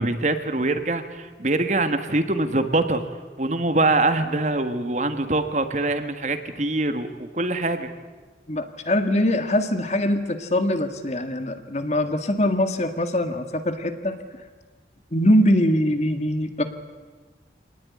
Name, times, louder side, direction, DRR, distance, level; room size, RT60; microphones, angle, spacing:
voice 1, 0.0-3.0 3.4-7.9, right 2 dB, 40° right, 9 dB, 1.7 m, -24 dB
voice 2, 8.5-14.1 15.1-16.6, left 1 dB, 40° left, 8 dB, 1.8 m, -22 dB
26.5 x 19.0 x 9.8 m, 1.4 s
head